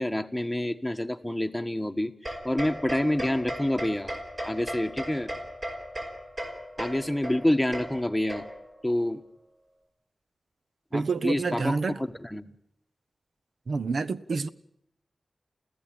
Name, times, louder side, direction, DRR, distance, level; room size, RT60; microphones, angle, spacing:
voice 1, 0.0-5.3 6.8-8.4 8.8-9.2 10.9-12.5, left 1 dB, 5° left, 1.5 m, -28 dB
sound 1, 2.2-8.8, equal, 40° right, 5.4 m, -37 dB
voice 2, 10.9-12.0 13.7-14.5, right 4 dB, 75° right, 1.0 m, -28 dB
29.0 x 15.0 x 9.0 m
wide cardioid pair, 115°, 0 cm